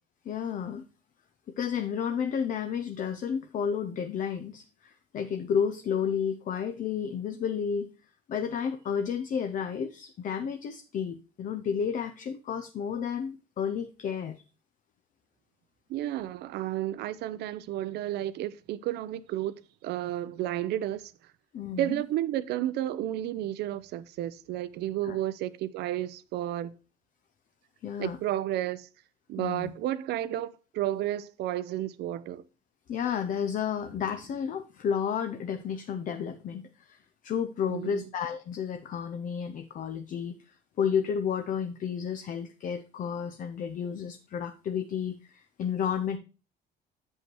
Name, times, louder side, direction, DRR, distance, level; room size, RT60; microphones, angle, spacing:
voice 1, 0.2-0.8 1.6-7.9 8.3-14.4 21.5-22.0 25.0-25.2 27.8-28.2 29.4-29.7 32.9-46.2, left 7 dB, 50° left, 0.7 m, -32 dB
voice 2, 15.9-21.1 21.8-26.7 28.0-28.9 29.3-32.4 37.7-38.1, right 13 dB, 75° right, 0.6 m, -32 dB
7.6 x 5.5 x 4.6 m
cardioid pair, 110°, 17 cm